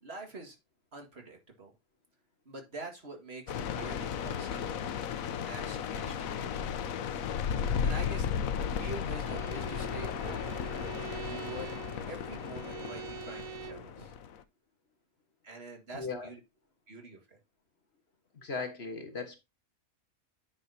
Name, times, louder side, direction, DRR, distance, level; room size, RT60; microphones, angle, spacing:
voice 1, 0.0-0.6 0.9-1.7 2.5-4.8 5.5-6.8 7.8-8.3 8.6-10.7 11.3-11.7 12.1-14.2 15.4-16.4 16.9-17.4, right 2 dB, 45° right, 2.1 m, -45 dB
sound 1, 3.5-14.4, left 7 dB, 75° left, 1.1 m, -35 dB
Bowed string instrument, 9.2-13.9, right 10 dB, 80° right, 1.1 m, -45 dB
voice 2, 15.9-16.3 18.3-19.4, left 4 dB, 45° left, 1.6 m, -37 dB
9.8 x 6.2 x 2.8 m
omnidirectional pair, 1.5 m